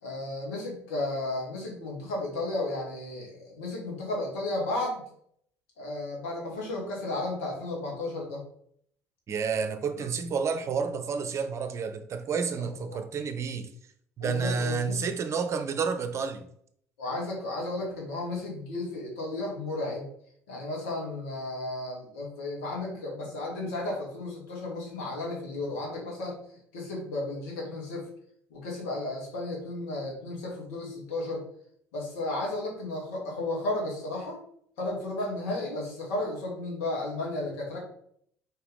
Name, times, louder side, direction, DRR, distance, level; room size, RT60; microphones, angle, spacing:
voice 1, 0.0-5.0 5.8-8.4 10.0-10.1 12.6-13.0 14.2-15.0 17.0-20.1 20.5-26.4 26.7-28.1 28.5-31.5 31.9-34.4 34.8-37.8, left 2 dB, 70° left, 2.3 m, -33 dB
voice 2, 9.3-13.7 14.2-16.5, right 5 dB, 40° right, 0.8 m, -30 dB
4.9 x 4.5 x 5.1 m
figure-of-eight pair, 55°, 7 cm